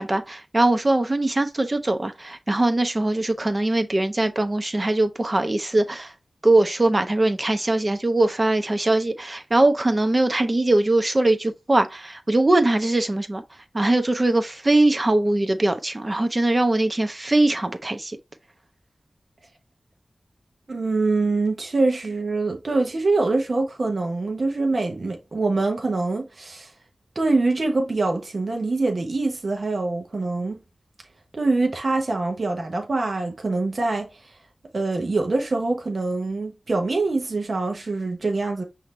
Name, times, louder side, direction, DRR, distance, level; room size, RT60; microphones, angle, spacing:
voice 1, 0.0-6.1 6.4-13.4 13.7-18.2, right 2 dB, 40° right, 0.9 m, -21 dB
voice 2, 20.7-26.7 27.1-30.6 31.3-34.3 34.7-38.6, right 3 dB, 65° right, 1.0 m, -24 dB
5.7 x 2.9 x 3.2 m
cardioid pair, 45°, 0 cm